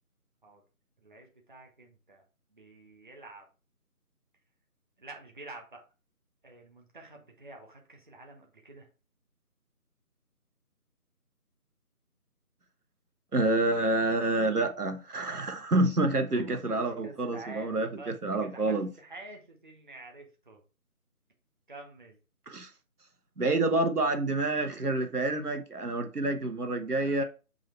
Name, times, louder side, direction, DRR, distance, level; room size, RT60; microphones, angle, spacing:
voice 1, 1.0-2.2 2.5-3.4 5.0-5.8 6.4-8.9 16.3-18.1 18.5-20.6 21.7-22.2 27.0-27.2, right 2 dB, 35° right, 1.1 m, -48 dB
voice 2, 13.3-18.9 22.5-22.7 23.4-27.2, right 2 dB, 85° right, 1.3 m, -28 dB
7.5 x 2.8 x 4.5 m
figure-of-eight pair, 165°, 45 cm